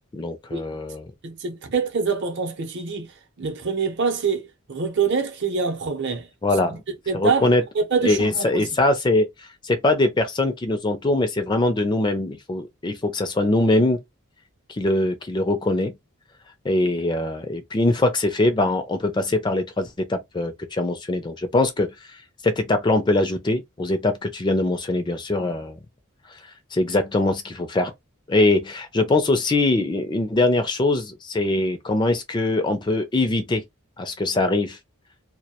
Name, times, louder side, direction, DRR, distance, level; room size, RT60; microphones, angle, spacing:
voice 1, 0.1-1.0 6.4-6.8 7.1-7.6 8.0-9.3 9.6-14.0 14.7-15.9 16.6-25.8 26.3-26.4 26.7-27.9 28.3-33.6 34.0-34.8, left 2 dB, 20° left, 0.3 m, -22 dB
voice 2, 1.2-6.3 6.7-7.5 7.7-8.7, right 5 dB, 55° right, 0.7 m, -25 dB
2.2 x 2.1 x 2.8 m
head